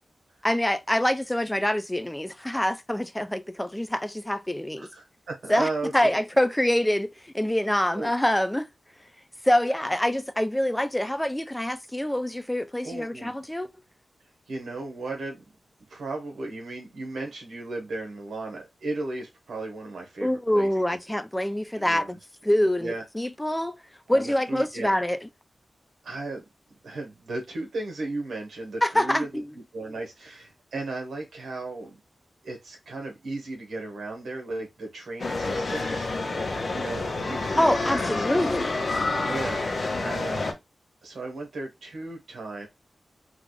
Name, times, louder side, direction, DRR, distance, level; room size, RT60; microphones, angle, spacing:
voice 1, 0.4-4.9 5.5-8.7 9.4-13.7 20.2-22.2 22.4-23.8 24.1-25.2 28.8-29.5 37.6-38.8, left 1 dB, 10° left, 0.5 m, -25 dB
voice 2, 4.8-6.1 7.9-8.1 12.8-13.3 14.5-15.4 15.9-21.0 21.8-22.1 22.8-23.0 24.1-24.9 26.0-26.4 26.8-29.4 29.7-32.0 32.4-36.4 36.7-38.5 39.2-40.5 41.0-42.7, right 2 dB, 90° right, 1.5 m, -35 dB
sound 1, 35.2-40.5, left 3 dB, 60° left, 1.1 m, -28 dB
3.5 x 2.4 x 3.3 m
cardioid pair, 65°, 0 cm